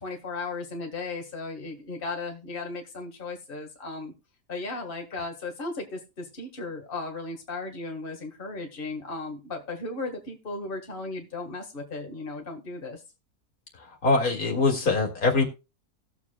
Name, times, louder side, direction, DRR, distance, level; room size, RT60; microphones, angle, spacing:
voice 1, 0.0-4.1 4.5-13.0, left 3 dB, 35° left, 2 dB, 1.8 m, -36 dB
voice 2, 14.0-15.4, left 3 dB, 70° left, 1 dB, 2.6 m, -23 dB
19.0 x 7.2 x 2.3 m, 0.29 s
omnidirectional pair, 1.6 m